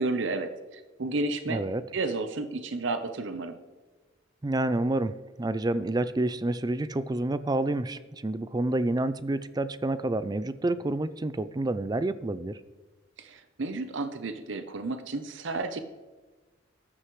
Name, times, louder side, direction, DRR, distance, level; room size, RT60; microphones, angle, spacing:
voice 1, 0.0-1.6 1.9-3.5 13.2-15.8, right 3 dB, 65° right, 9 dB, 0.7 m, -32 dB
voice 2, 1.5-1.8 4.4-5.1 5.4-12.6, right 2 dB, 20° right, 14 dB, 0.4 m, -28 dB
13.5 x 9.7 x 3.2 m, 1.3 s
head